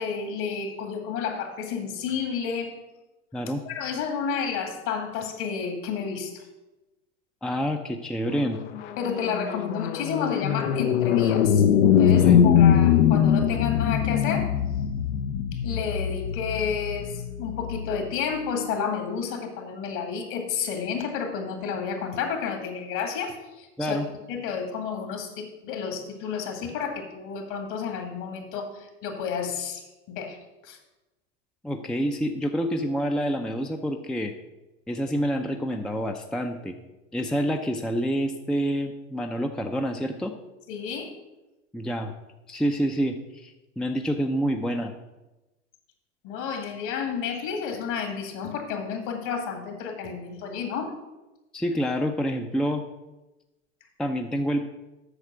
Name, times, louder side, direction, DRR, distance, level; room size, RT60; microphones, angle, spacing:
voice 1, 0.0-2.7 3.6-6.5 9.0-14.5 15.5-24.0 24.3-30.4 30.6-30.8 40.7-41.1 46.2-50.9, left 6 dB, 55° left, 4 dB, 2.2 m, -31 dB
voice 2, 7.4-8.6 12.2-12.5 23.8-24.1 31.6-34.3 34.9-36.8 37.1-40.3 41.7-42.1 42.5-44.9 51.5-52.8 54.0-54.7, equal, ahead, 5 dB, 0.5 m, -27 dB
sound 1, 8.4-18.0, left 9 dB, 70° left, 0.8 m, -22 dB
8.1 x 6.6 x 6.2 m, 1.0 s
hypercardioid pair, 90°, 37 cm